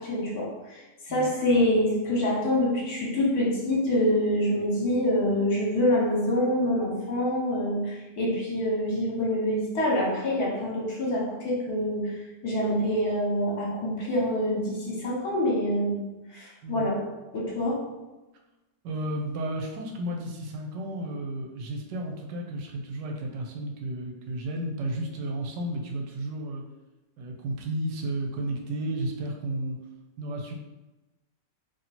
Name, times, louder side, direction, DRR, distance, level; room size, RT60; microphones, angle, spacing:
voice 1, 0.0-12.2 12.4-16.0 16.3-17.9, left 1 dB, 60° left, -4 dB, 1.4 m, -26 dB
voice 2, 16.6-16.9 18.8-26.6 27.2-29.8 30.2-30.5, right 1 dB, 80° right, 2 dB, 1.2 m, -33 dB
3.0 x 2.8 x 4.1 m, 1.1 s
omnidirectional pair, 1.9 m